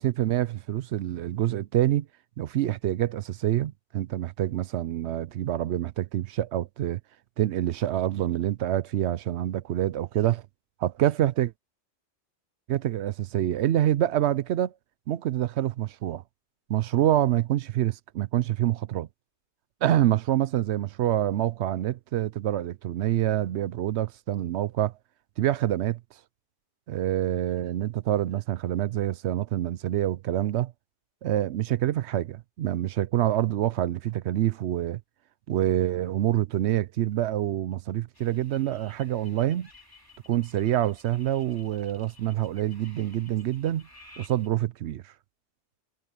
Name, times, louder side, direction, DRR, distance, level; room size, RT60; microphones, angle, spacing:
voice 1, 0.0-2.1 2.4-7.0 7.4-10.4 10.8-11.5 12.7-14.7 15.1-16.2 16.7-19.1 19.8-24.9 25.4-26.0 26.9-30.7 31.2-35.0 35.5-39.7 40.3-43.9 44.2-45.0, right 12 dB, 70° right, 0.8 m, -26 dB
sound 1, 38.1-44.5, left 2 dB, 20° left, 3.0 m, -54 dB
omnidirectional pair, 1.2 m